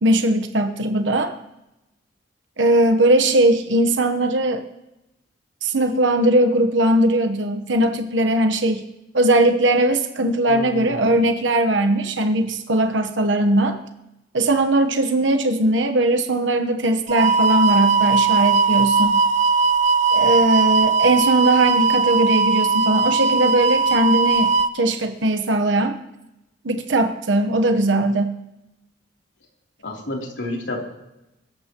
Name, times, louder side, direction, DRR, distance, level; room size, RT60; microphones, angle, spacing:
voice 1, 0.0-1.3 2.6-4.6 5.6-8.8 9.1-13.8 14.3-19.2 20.1-26.0 26.6-28.4, right 1 dB, 85° right, 7 dB, 1.1 m, -19 dB
voice 2, 10.5-11.1 29.8-30.8, left 1 dB, 85° left, -1 dB, 3.3 m, -30 dB
sound 1, 17.1-24.7, right 4 dB, 40° right, 0.6 m, -18 dB
23.0 x 13.5 x 3.0 m, 0.93 s
head